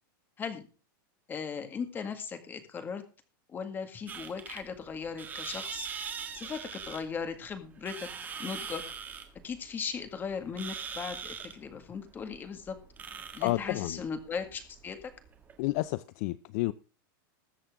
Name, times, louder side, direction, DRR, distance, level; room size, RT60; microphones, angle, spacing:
voice 1, 1.3-3.0 3.5-5.9 6.3-8.1 8.4-8.8 9.4-12.8 13.3-15.1, left 6 dB, 15° left, 1.9 m, -38 dB
sound 1, 4.1-15.9, right 6 dB, 15° right, 1.9 m, -42 dB
voice 2, 13.4-14.0 15.6-16.7, left 19 dB, 45° left, 0.5 m, -30 dB
21.0 x 7.5 x 3.7 m
supercardioid pair, 160°, 11 cm